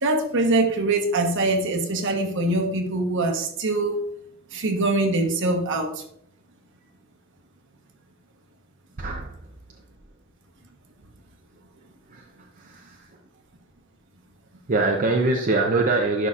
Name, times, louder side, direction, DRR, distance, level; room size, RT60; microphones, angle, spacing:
voice 1, 0.0-4.0 4.5-6.0, right 2 dB, 60° right, 5 dB, 1.1 m, -23 dB
voice 2, 9.0-9.4 12.1-13.1 14.7-16.3, right 2 dB, 40° right, 1 dB, 0.6 m, -24 dB
11.0 x 5.7 x 2.5 m, 0.70 s
head